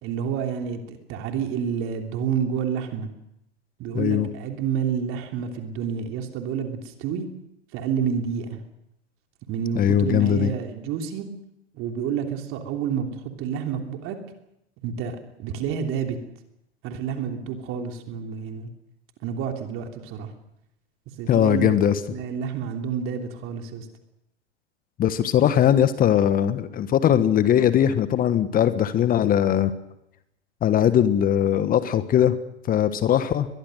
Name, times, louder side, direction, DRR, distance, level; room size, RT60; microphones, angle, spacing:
voice 1, 0.0-3.1 3.8-7.2 7.7-8.6 9.5-11.3 11.7-14.2 14.8-16.2 16.8-18.7 19.2-20.3 21.2-21.7 22.1-23.9, right 7 dB, 40° right, 4 dB, 3.1 m, -29 dB
voice 2, 3.9-4.3 9.7-10.5 21.3-22.0 25.0-29.7 30.6-32.3 32.7-33.5, left 10 dB, 25° left, 13 dB, 1.3 m, -20 dB
22.5 x 22.0 x 6.5 m, 0.83 s
figure-of-eight pair, 100°, 34 cm